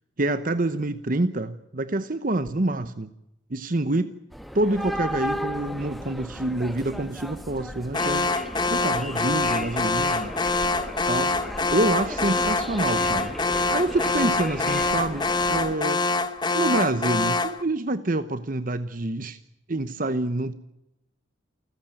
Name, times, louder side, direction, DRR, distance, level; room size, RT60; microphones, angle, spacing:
voice 1, 0.2-3.1 3.5-4.1 4.5-8.3 8.7-10.3 11.1-11.4 11.7-13.3 13.7-16.0 16.5-19.4 19.7-20.5, right 2 dB, 45° right, 11 dB, 0.9 m, -27 dB
sound 1, 4.3-15.8, equal, ahead, 1.2 m, -35 dB
Alarm, 7.9-17.6, left 3 dB, 20° left, 1.3 m, -25 dB
28.5 x 15.0 x 9.1 m, 0.87 s
head